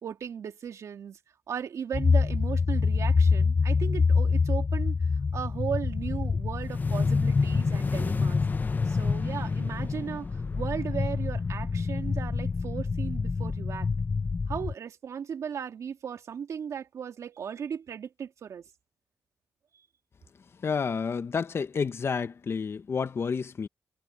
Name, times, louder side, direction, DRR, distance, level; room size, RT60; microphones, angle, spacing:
voice 1, 0.0-1.2 1.5-5.0 5.3-8.4 8.9-13.9 14.5-18.6, right 7 dB, 70° right, 2.3 m, -36 dB
sound 1, 1.9-14.7, left 4 dB, 35° left, 0.7 m, -26 dB
voice 2, 20.6-23.7, left 5 dB, 50° left, 1.2 m, -30 dB
cardioid pair, 80°, 5 cm